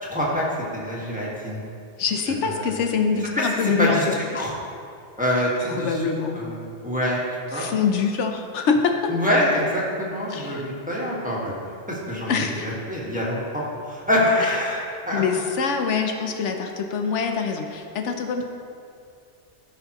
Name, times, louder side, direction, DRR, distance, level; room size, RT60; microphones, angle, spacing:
voice 1, 0.0-0.5 0.7-1.6 2.5-2.7 3.3-4.0 4.3-4.5 5.2-6.0 6.3-7.6 9.1-11.5 11.9-15.2, left 1 dB, 5° right, -6 dB, 1.5 m, -25 dB
voice 2, 2.0-4.5 5.6-6.4 7.5-9.1 10.3-10.7 12.3-12.7 14.4-14.5 15.1-18.4, left 5 dB, 80° left, 4 dB, 1.0 m, -25 dB
14.0 x 5.6 x 3.0 m, 2.4 s
omnidirectional pair, 1.2 m